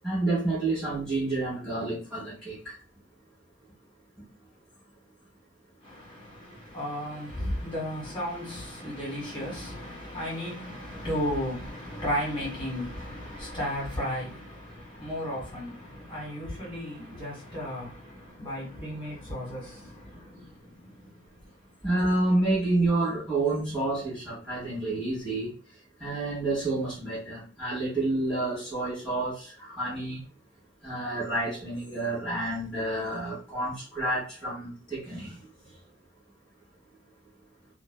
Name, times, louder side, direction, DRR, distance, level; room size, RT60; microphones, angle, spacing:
voice 1, 0.0-2.8 21.8-30.3 30.8-35.8, right 2 dB, 5° left, 1.1 m, -29 dB
voice 2, 5.8-21.7, equal, 25° left, 1.5 m, -35 dB
2.6 x 2.1 x 2.2 m
head